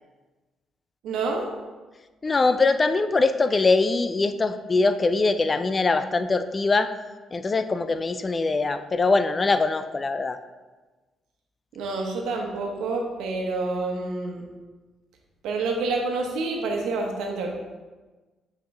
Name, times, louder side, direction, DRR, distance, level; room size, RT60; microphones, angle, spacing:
voice 1, 1.0-1.5 11.7-14.5 15.4-17.5, right 3 dB, 85° right, 2 dB, 1.2 m, -28 dB
voice 2, 2.2-6.9 7.3-10.4, left 3 dB, 30° left, 10 dB, 0.4 m, -22 dB
7.9 x 4.9 x 3.4 m, 1.2 s
cardioid pair, 90°, 0 cm